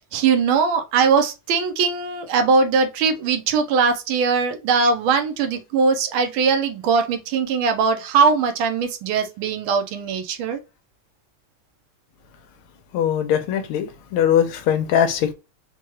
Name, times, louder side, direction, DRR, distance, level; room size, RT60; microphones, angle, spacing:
voice 1, 0.1-10.6, right 5 dB, 75° right, 1.5 m, -20 dB
voice 2, 12.9-15.3, left 9 dB, 80° left, 1.4 m, -21 dB
4.4 x 2.3 x 3.0 m
omnidirectional pair, 2.4 m